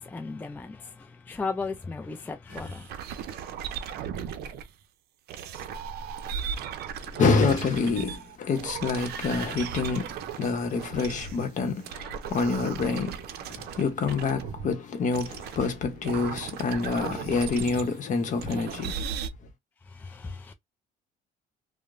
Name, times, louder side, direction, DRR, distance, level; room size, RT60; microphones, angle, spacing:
voice 1, 0.0-2.9 19.9-20.5, left 4 dB, 10° left, 0.3 m, -36 dB
sound 1, 2.5-4.7 5.3-11.5 11.8-14.7 15.1-18.0 18.4-19.3, right 7 dB, 70° right, 0.5 m, -37 dB
voice 2, 7.0-19.2, left 4 dB, 50° left, 0.8 m, -27 dB
2.9 x 2.0 x 2.4 m
cardioid pair, 110°, 17 cm